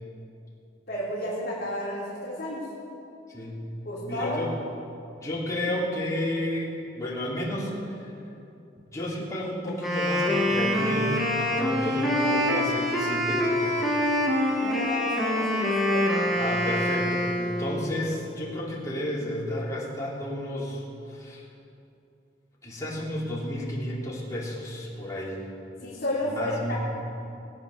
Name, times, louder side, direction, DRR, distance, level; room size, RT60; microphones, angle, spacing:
voice 1, 0.9-2.7 3.8-4.4 14.5-16.1 25.8-26.8, left 1 dB, 55° left, -11 dB, 3.4 m, -32 dB
voice 2, 4.0-4.5 5.2-8.1 8.9-13.9 16.2-21.4 22.6-25.4 26.2-26.8, left 1 dB, 20° left, -6 dB, 3.4 m, -32 dB
Wind instrument woodwind instrument, 9.7-17.8, left 1 dB, ahead, 2.1 m, -25 dB
21.0 x 8.4 x 6.6 m, 2.7 s
head